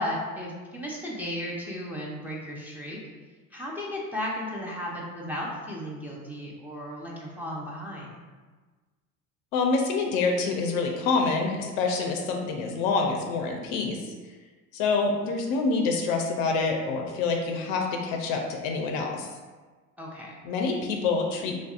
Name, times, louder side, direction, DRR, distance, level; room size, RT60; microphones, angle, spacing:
voice 1, 0.0-3.0 3.5-8.1 20.0-20.3, left 1 dB, 5° right, -5 dB, 0.6 m, -34 dB
voice 2, 9.5-14.0 14.7-19.3 20.4-21.6, left 4 dB, 65° left, 2 dB, 0.6 m, -26 dB
3.2 x 2.6 x 2.4 m, 1.3 s
hypercardioid pair, 75°, 43 cm